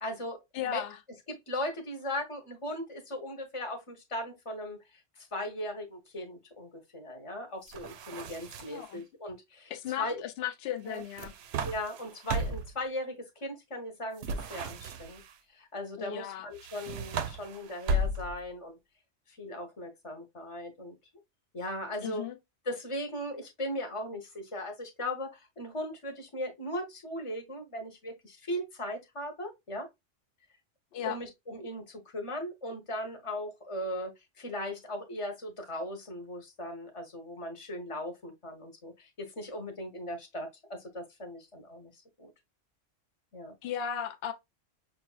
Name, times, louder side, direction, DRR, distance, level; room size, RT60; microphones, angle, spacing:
voice 1, 0.0-0.8 1.3-4.8 5.2-9.7 10.0-10.2 10.8-11.0 11.6-13.1 13.4-15.2 15.5-18.8 19.3-20.9 21.5-22.2 22.7-29.9 31.0-41.9 42.2-42.3 43.3-43.5, left 1 dB, 30° left, 0.9 m, -38 dB
voice 2, 0.5-1.0 8.7-9.0 9.7-11.3 16.0-16.5 22.0-22.3 30.9-31.2 43.6-44.3, left 10 dB, 60° left, 0.8 m, -35 dB
sound 1, 7.7-8.9 10.9-12.8 14.2-15.3 16.5-18.5, right 1 dB, 65° right, 0.8 m, -35 dB
5.5 x 2.6 x 2.3 m
omnidirectional pair, 1.3 m